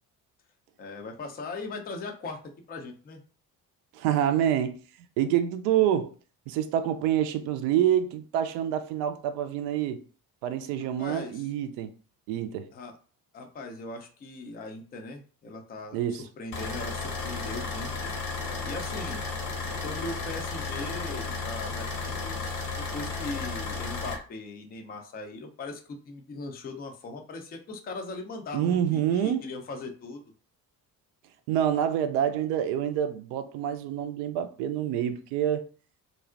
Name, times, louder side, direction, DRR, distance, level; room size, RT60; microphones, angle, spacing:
voice 1, 0.8-2.4 2.7-3.2 11.0-11.5 12.7-13.0 13.3-18.1 18.6-19.2 19.8-30.2, left 3 dB, 20° left, 0.5 m, -39 dB
voice 2, 3.9-4.8 5.2-6.1 6.5-10.0 10.4-11.9 12.3-12.7 15.9-16.2 28.5-29.4 31.5-35.7, right 10 dB, 55° right, 0.5 m, -27 dB
sound 1, 16.5-24.1, left 4 dB, 65° left, 0.9 m, -33 dB
2.4 x 2.0 x 2.4 m
figure-of-eight pair, 50°, 47 cm